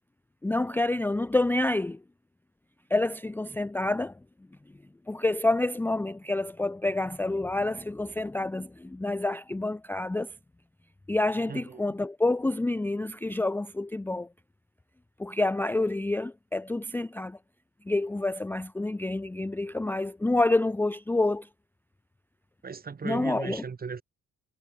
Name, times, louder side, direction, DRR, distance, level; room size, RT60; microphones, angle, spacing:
voice 1, 0.4-2.0 2.9-4.1 5.1-10.3 11.1-14.3 15.2-17.4 17.9-21.5 23.0-23.6, left 2 dB, 5° left, 0.5 m, -28 dB
voice 2, 11.5-11.9 22.6-24.0, right 5 dB, 30° right, 1.3 m, -37 dB
cardioid pair, 90°, 30 cm